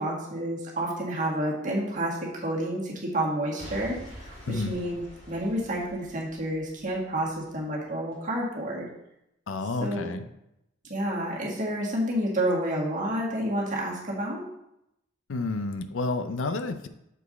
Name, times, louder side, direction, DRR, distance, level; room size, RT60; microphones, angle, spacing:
voice 1, 0.0-8.9 9.8-10.1 10.9-14.5, right 1 dB, 40° right, -4 dB, 1.8 m, -29 dB
Boom / Shatter / Crushing, 3.6-7.6 8.1-8.2, equal, 35° left, 1.7 m, -46 dB
voice 2, 9.5-10.2 15.3-16.9, left 3 dB, 85° left, 9 dB, 0.5 m, -30 dB
7.1 x 4.6 x 4.1 m, 0.83 s
head